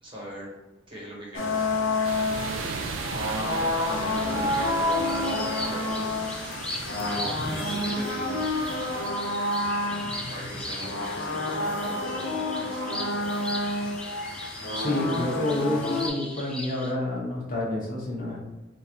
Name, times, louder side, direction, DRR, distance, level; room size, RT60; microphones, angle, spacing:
voice 1, 0.0-0.5 0.9-1.7 3.8-6.1 7.0-8.4 10.3-12.8, right 1 dB, 25° right, -4 dB, 1.2 m, -40 dB
sound 1, 1.3-16.1, left 2 dB, 90° left, 0.8 m, -29 dB
sound 2, 2.0-9.1, right 6 dB, 85° right, 0.3 m, -37 dB
sound 3, 3.9-16.9, left 1 dB, 5° left, 0.6 m, -39 dB
voice 2, 14.7-18.4, left 1 dB, 45° left, -4 dB, 1.2 m, -29 dB
4.9 x 2.6 x 3.0 m, 1.1 s
head